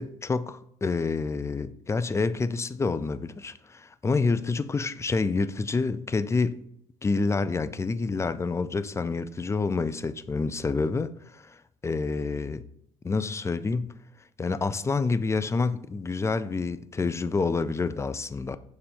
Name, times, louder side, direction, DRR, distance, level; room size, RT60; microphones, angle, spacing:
voice 1, 0.0-6.6 7.0-12.6 13.0-13.9 14.4-18.6, left 4 dB, 15° left, 0.4 m, -28 dB
6.8 x 3.2 x 5.3 m
figure-of-eight pair, 50°, 19 cm